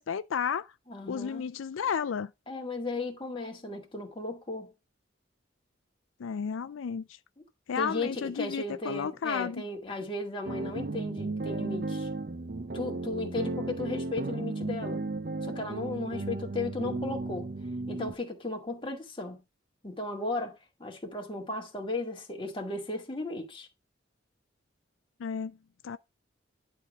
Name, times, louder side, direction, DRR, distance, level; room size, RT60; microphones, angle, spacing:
voice 1, 0.0-0.7 1.1-2.3 6.2-7.2 7.7-9.6 25.2-25.6 25.8-26.0, left 7 dB, 85° left, 0.4 m, -32 dB
voice 2, 0.9-1.5 2.5-4.7 7.8-12.1 12.7-15.0 15.4-17.5 17.9-19.4 19.8-23.7, left 2 dB, 25° left, 1.9 m, -35 dB
sound 1, 10.5-18.1, right 2 dB, 45° right, 0.6 m, -35 dB
11.0 x 3.6 x 6.3 m
head